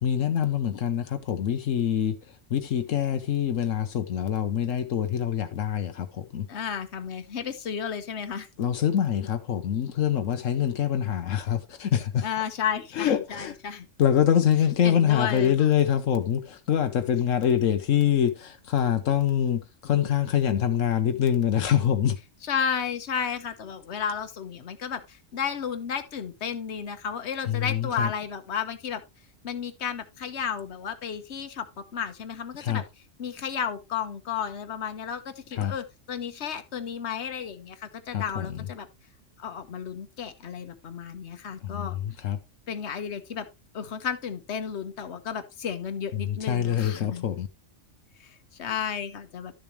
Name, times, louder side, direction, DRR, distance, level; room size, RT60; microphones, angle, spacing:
voice 1, 0.0-6.5 8.6-12.3 12.9-13.6 14.0-22.2 27.4-28.1 32.6-32.8 35.5-35.7 38.1-38.6 41.6-42.4 46.1-47.5, left 9 dB, 80° left, 1.2 m, -25 dB
voice 2, 6.5-8.5 12.2-13.9 14.8-15.7 22.4-29.0 29.4-32.8 33.2-38.9 39.4-41.9 42.7-43.5 43.7-47.2 48.2-49.5, left 7 dB, 60° left, 1.3 m, -33 dB
12.5 x 7.0 x 3.1 m
omnidirectional pair, 1.3 m